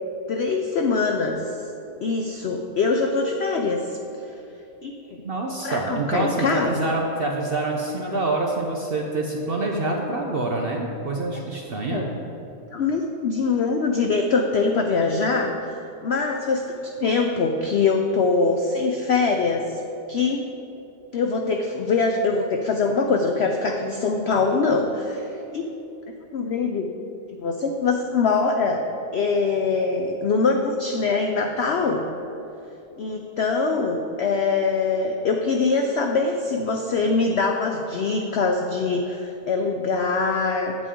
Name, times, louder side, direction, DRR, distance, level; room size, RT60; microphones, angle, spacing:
voice 1, 0.3-1.4 2.0-4.0 4.8-5.2 5.6-6.8 11.9-12.1 12.7-15.8 16.0-19.8 20.1-20.5 21.1-25.7 26.3-26.9 27.4-28.8 29.1-32.1 33.0-40.8, left 4 dB, 85° left, 3 dB, 0.5 m, -23 dB
voice 2, 5.2-12.1, right 2 dB, 55° right, 0 dB, 0.6 m, -26 dB
8.4 x 8.3 x 3.7 m, 2.9 s
omnidirectional pair, 1.7 m